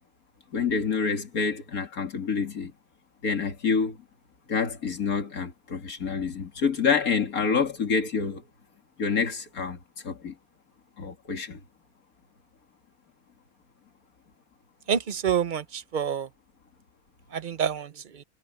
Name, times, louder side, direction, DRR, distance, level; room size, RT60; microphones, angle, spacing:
voice 1, 0.5-2.7 3.2-4.0 4.5-8.4 9.0-9.8 10.0-10.3 11.0-11.6, left 5 dB, 90° left, 2.7 m, -27 dB
voice 2, 14.9-16.3 17.3-18.2, right 7 dB, 45° right, 0.7 m, -28 dB
omnidirectional pair, 1.5 m